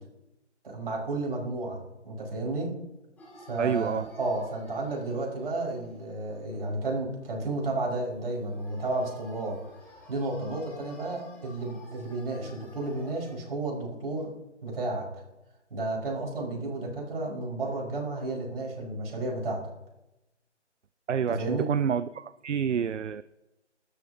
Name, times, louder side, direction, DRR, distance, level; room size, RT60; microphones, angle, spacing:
voice 1, 0.6-2.7 3.5-9.6 10.1-14.3 14.6-15.1 15.7-19.6 21.3-21.7, right 2 dB, 55° right, -1 dB, 5.7 m, -32 dB
sound 1, 3.2-7.2 7.5-7.7 8.0-13.3, left 1 dB, 5° left, 2.4 m, -52 dB
voice 2, 3.6-4.1 21.1-23.2, right 7 dB, 80° right, 15 dB, 0.6 m, -28 dB
27.0 x 13.0 x 2.9 m, 0.97 s
figure-of-eight pair, 155°, 36 cm